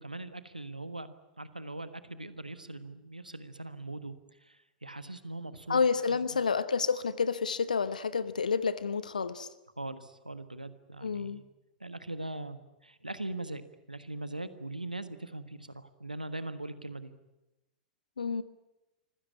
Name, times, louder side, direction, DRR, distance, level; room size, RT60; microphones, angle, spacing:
voice 1, 0.0-4.1 4.4-5.8 6.1-6.4 9.8-11.4 11.8-13.6 13.9-17.1, right 2 dB, 85° right, 12 dB, 1.4 m, -41 dB
voice 2, 5.7-9.5 11.0-11.4 18.2-18.4, left 5 dB, 70° left, 15 dB, 1.0 m, -29 dB
25.5 x 16.5 x 9.8 m, 0.96 s
figure-of-eight pair, 100°, 4 cm